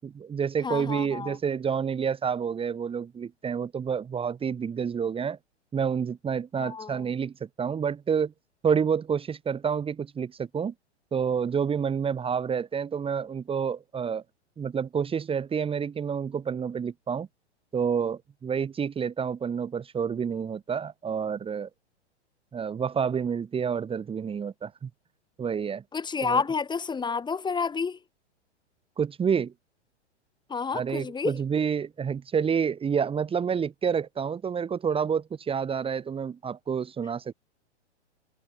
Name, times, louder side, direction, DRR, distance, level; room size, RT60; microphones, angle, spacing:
voice 1, 0.0-5.4 5.7-8.3 8.6-10.7 11.1-14.2 14.6-17.3 17.7-21.7 22.5-24.9 25.4-25.8 26.2-26.4 29.0-29.5 30.7-37.3, right 7 dB, 15° right, 5.1 m, -29 dB
voice 2, 0.6-1.4 6.6-7.0 25.9-28.0 30.5-31.4, left 5 dB, 10° left, 7.2 m, -29 dB
figure-of-eight pair, 110°, 35 cm